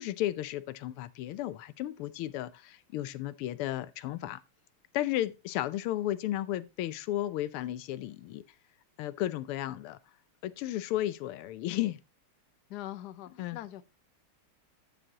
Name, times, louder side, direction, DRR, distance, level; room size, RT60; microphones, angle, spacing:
voice 1, 0.0-4.4 4.9-8.4 9.0-10.0 10.4-12.0 13.4-13.6, left 14 dB, 90° left, 1.6 m, -34 dB
voice 2, 12.7-13.8, left 13 dB, 65° left, 1.1 m, -42 dB
12.5 x 7.1 x 2.9 m
omnidirectional pair, 2.4 m